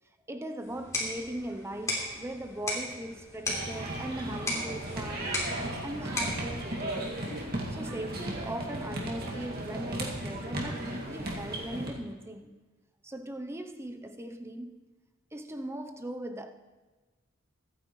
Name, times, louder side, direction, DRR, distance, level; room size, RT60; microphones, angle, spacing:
voice 1, 0.3-5.5 5.8-7.2 7.7-12.6 13.0-14.8 15.3-16.5, right 1 dB, 10° right, 0.6 m, -39 dB
sound 1, 0.6-7.6, left 1 dB, 15° left, 3.1 m, -37 dB
sound 2, 3.4-11.9, right 1 dB, 45° right, 2.1 m, -36 dB
23.5 x 9.6 x 3.1 m
head